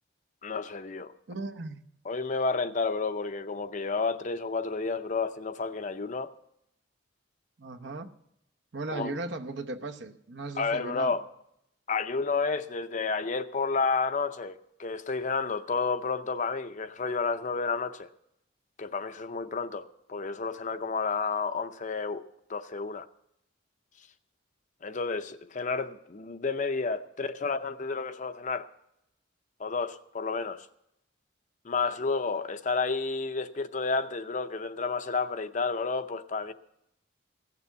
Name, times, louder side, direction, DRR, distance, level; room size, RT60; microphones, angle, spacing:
voice 1, 0.4-1.1 2.0-6.3 8.9-9.1 10.6-11.2 11.9-18.1 18.8-22.2 22.5-23.1 24.8-28.7 29.6-30.7 31.6-36.5, left 4 dB, 40° left, 0.6 m, -31 dB
voice 2, 1.3-1.9 7.6-8.1 8.7-11.2, right 2 dB, 65° right, 0.9 m, -37 dB
16.0 x 6.8 x 8.1 m
head